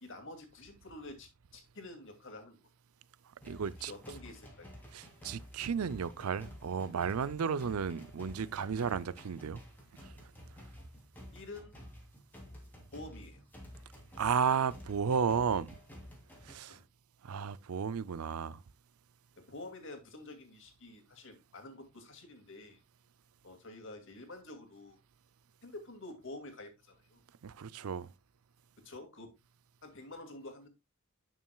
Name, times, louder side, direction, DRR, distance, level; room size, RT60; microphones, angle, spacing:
voice 1, 0.0-2.6 3.8-4.7 11.3-11.8 12.9-13.5 16.6-16.8 19.4-22.8 23.4-25.0 25.6-27.2 28.8-29.3 29.8-30.7, left 2 dB, 60° left, 2.2 m, -48 dB
sound 1, 3.4-16.6, equal, 10° left, 2.9 m, -52 dB
voice 2, 3.4-3.9 4.9-9.6 10.0-10.2 14.2-15.8 16.4-16.8 17.2-18.6 27.4-28.1, right 6 dB, 80° right, 0.5 m, -33 dB
11.0 x 6.2 x 2.3 m
head